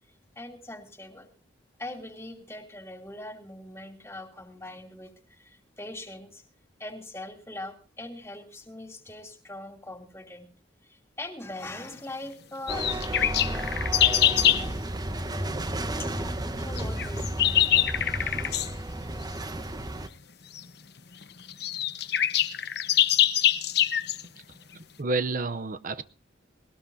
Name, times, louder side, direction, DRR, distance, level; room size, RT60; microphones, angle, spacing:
voice 1, 0.1-1.3 1.8-6.4 6.8-10.5 10.8-14.8 15.9-18.5, left 2 dB, 15° left, 4 dB, 2.9 m, -42 dB
sound 1, 12.7-14.7 16.8-18.7 20.6-20.7 21.2-21.3 21.5-24.2, left 11 dB, 60° left, 1.1 m, -24 dB
sound 2, 12.7-20.1, right 1 dB, 20° right, 1.1 m, -32 dB
voice 2, 24.7-26.0, right 3 dB, 45° right, 14 dB, 0.6 m, -30 dB
20.0 x 18.5 x 2.7 m, 0.36 s
head